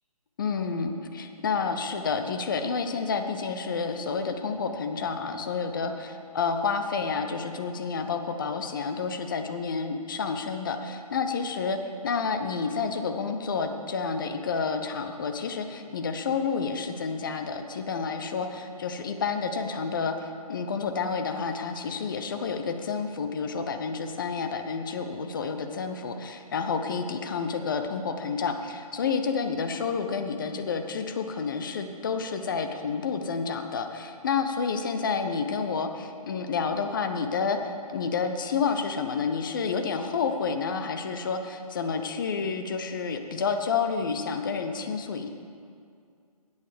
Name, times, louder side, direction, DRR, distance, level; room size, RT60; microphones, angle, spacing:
voice 1, 0.4-11.8 12.0-45.3, left 5 dB, 35° left, 6 dB, 0.7 m, -29 dB
11.0 x 8.1 x 5.1 m, 2.3 s
figure-of-eight pair, 145°, 20 cm